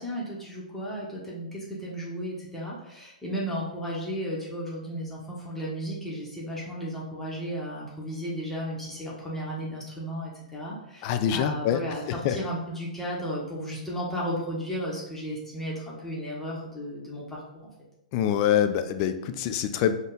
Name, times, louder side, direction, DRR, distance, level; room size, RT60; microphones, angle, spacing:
voice 1, 0.0-17.7, equal, 5° left, -6 dB, 1.0 m, -34 dB
voice 2, 11.0-11.8 12.1-12.4 18.1-19.9, left 9 dB, 40° left, 9 dB, 0.4 m, -25 dB
5.4 x 2.3 x 3.8 m, 0.87 s
hypercardioid pair, 120°, 4 cm